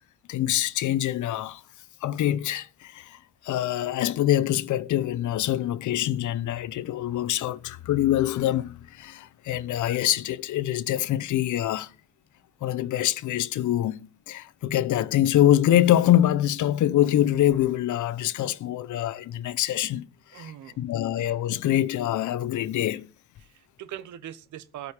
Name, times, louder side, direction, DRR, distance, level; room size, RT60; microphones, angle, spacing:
voice 1, 0.3-1.6 2.0-3.2 3.4-11.9 12.6-14.0 14.3-23.1, left 12 dB, 75° left, 0.9 m, -25 dB
voice 2, 20.3-20.8 23.4-24.9, right 11 dB, 75° right, 1.0 m, -41 dB
13.0 x 5.2 x 8.2 m
cardioid pair, 90°, 30 cm